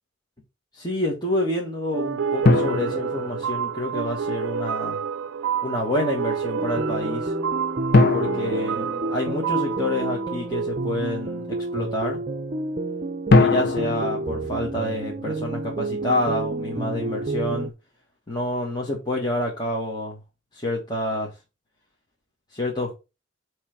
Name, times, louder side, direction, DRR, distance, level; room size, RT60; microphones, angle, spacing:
voice 1, 0.7-5.0 5.6-7.3 8.1-11.4 11.7-12.2 13.4-17.7 18.3-20.2 20.5-21.3 22.5-23.0, left 1 dB, 20° left, 1.6 m, -28 dB
sound 1, 1.9-11.2, right 7 dB, 90° right, 0.4 m, -29 dB
sound 2, 2.4-4.1 7.9-9.8 13.3-15.6, left 3 dB, 55° left, 0.9 m, -23 dB
sound 3, 6.6-17.7, right 2 dB, 40° right, 0.6 m, -30 dB
8.4 x 3.3 x 5.8 m
head